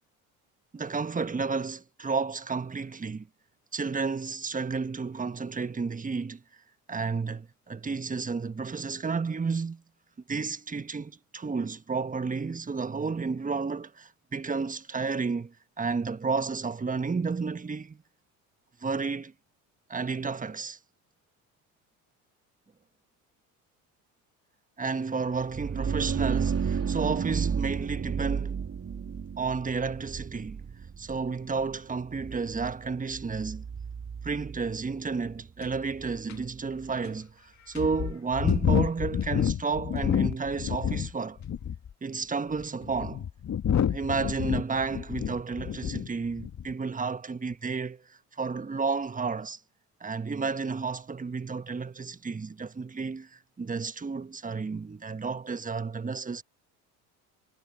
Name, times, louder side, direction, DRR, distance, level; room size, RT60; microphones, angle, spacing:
voice 1, 0.7-3.3 3.7-6.4 6.9-9.8 10.3-18.0 18.8-19.3 19.9-20.8 24.8-28.6 29.4-30.6 31.0-33.6 34.2-41.4 42.0-43.2 43.9-49.6 50.0-56.4, right 4 dB, 20° right, 1.4 m, -32 dB
sound 1, 25.5-36.9, right 6 dB, 35° right, 3.4 m, -33 dB
sound 2, 35.6-35.7 36.3-36.4 37.0-37.1 37.8-41.1 41.4-41.9 42.6-46.1 46.4-46.7, left 9 dB, 40° left, 2.1 m, -28 dB
hypercardioid pair, 65°, 44 cm